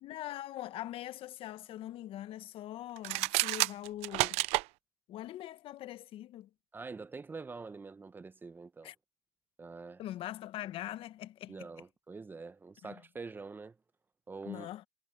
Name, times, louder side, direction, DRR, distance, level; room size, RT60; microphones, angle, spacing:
voice 1, 0.0-4.4 5.1-6.5 8.8-8.9 10.0-11.7 12.8-12.9 14.4-14.8, left 13 dB, 50° left, 1.3 m, -42 dB
sound 1, 3.0-4.7, right 22 dB, 65° right, 0.7 m, -30 dB
voice 2, 6.7-8.9 9.6-10.0 11.5-13.8 14.3-14.7, right 4 dB, 15° right, 1.0 m, -45 dB
supercardioid pair, 100°, 12 cm